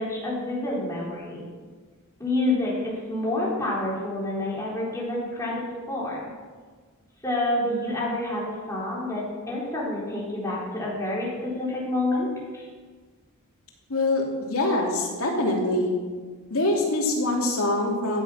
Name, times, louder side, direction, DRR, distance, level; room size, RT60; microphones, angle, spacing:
voice 1, 0.0-1.4 2.2-6.3 7.2-12.3 12.5-12.7, left 1 dB, 15° left, -5 dB, 4.1 m, -28 dB
voice 2, 13.9-15.9 16.5-18.2, left 2 dB, 70° left, -1 dB, 3.0 m, -24 dB
14.5 x 9.3 x 5.7 m, 1.5 s
head